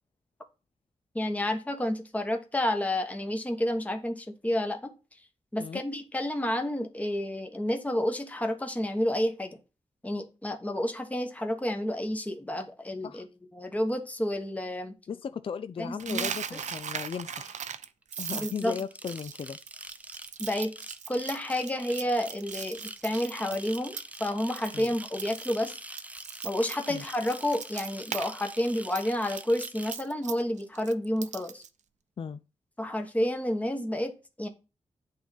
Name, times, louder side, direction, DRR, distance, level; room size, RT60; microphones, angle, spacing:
voice 1, 1.1-4.9 5.5-9.6 10.0-13.3 13.5-14.9 15.8-16.6 18.4-18.7 20.4-20.7 21.1-25.8 26.4-31.6 32.8-34.5, left 1 dB, 10° left, 1.1 m, -30 dB
voice 2, 15.1-17.6 18.2-19.6 24.7-24.9 26.9-27.0 32.2-32.4, left 6 dB, 50° left, 0.4 m, -36 dB
Coin (dropping), 16.0-24.3 24.6-24.9 25.2-28.3 28.6-31.7, right 8 dB, 80° right, 0.5 m, -38 dB
sound 1, 16.5-17.2 18.0-30.0, right 1 dB, 10° right, 0.5 m, -44 dB
8.6 x 3.6 x 5.7 m
wide cardioid pair, 100°, 12 cm